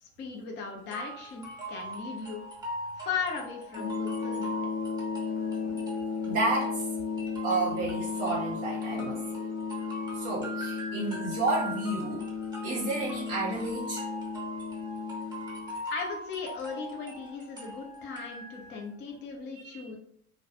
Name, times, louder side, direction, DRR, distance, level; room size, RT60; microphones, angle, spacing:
voice 1, 0.0-2.4 3.0-4.6 15.9-20.0, left 5 dB, 25° left, 1 dB, 0.5 m, -37 dB
sound 1, 0.9-18.8, right 1 dB, 10° right, 0.8 m, -41 dB
sound 2, 3.8-15.7, left 5 dB, 80° left, 0.6 m, -35 dB
voice 2, 6.3-6.8 7.4-9.4 10.1-12.2 12.6-14.0 19.6-19.8, right 2 dB, 50° right, -3 dB, 0.7 m, -31 dB
2.2 x 2.1 x 2.8 m, 0.65 s
figure-of-eight pair, 70°, 45 cm